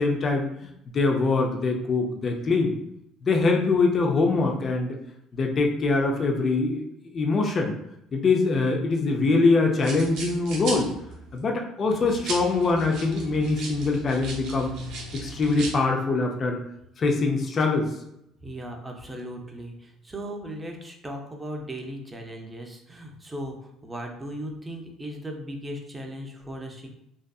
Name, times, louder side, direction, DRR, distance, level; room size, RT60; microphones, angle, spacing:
voice 1, 0.0-2.7 3.2-5.0 5.3-6.8 7.1-7.7 8.1-10.9 11.3-14.7 15.1-16.6 17.0-17.9, left 3 dB, 40° left, 2 dB, 0.4 m, -23 dB
sound 1, 9.8-11.4 12.0-15.7, right 2 dB, 75° right, 0.7 m, -37 dB
voice 2, 18.4-26.9, equal, 15° right, 2 dB, 0.5 m, -37 dB
2.5 x 2.4 x 2.3 m, 0.79 s
cardioid pair, 105°, 0 cm